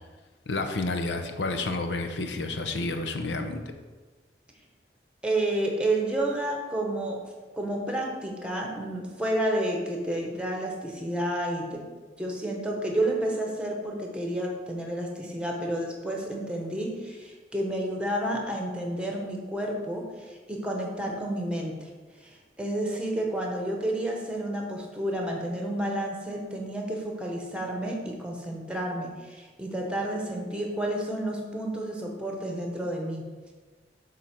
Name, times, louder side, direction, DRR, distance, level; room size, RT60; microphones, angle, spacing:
voice 1, 0.5-3.6, left 2 dB, 75° left, 6 dB, 0.8 m, -30 dB
voice 2, 5.2-7.2 7.5-11.9 12.2-21.9 22.2-33.3, right 1 dB, 5° right, 0 dB, 1.1 m, -30 dB
7.5 x 3.9 x 6.0 m, 1.4 s
head